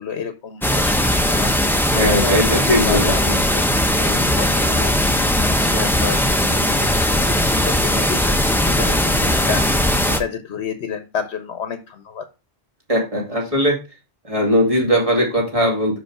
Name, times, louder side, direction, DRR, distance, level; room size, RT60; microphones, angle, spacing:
voice 1, 0.0-1.8 2.1-12.2, left 7 dB, 75° left, 8 dB, 1.1 m, -31 dB
sound 1, 0.6-10.2, left 1 dB, ahead, 0.6 m, -18 dB
voice 2, 1.9-3.4 12.9-13.8 14.2-16.0, equal, 30° right, -1 dB, 2.5 m, -19 dB
6.0 x 5.3 x 4.7 m, 0.29 s
omnidirectional pair, 1.1 m